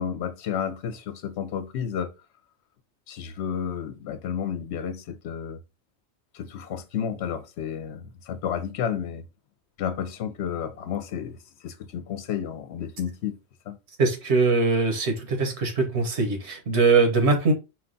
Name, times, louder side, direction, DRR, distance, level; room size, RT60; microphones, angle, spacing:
voice 1, 0.0-2.1 3.1-5.6 6.3-9.2 9.8-11.4 11.6-13.4 13.7-13.8, left 8 dB, 80° left, 0.9 m, -31 dB
voice 2, 14.0-17.5, right 4 dB, 80° right, 1.3 m, -22 dB
4.6 x 2.3 x 3.8 m
omnidirectional pair, 1.1 m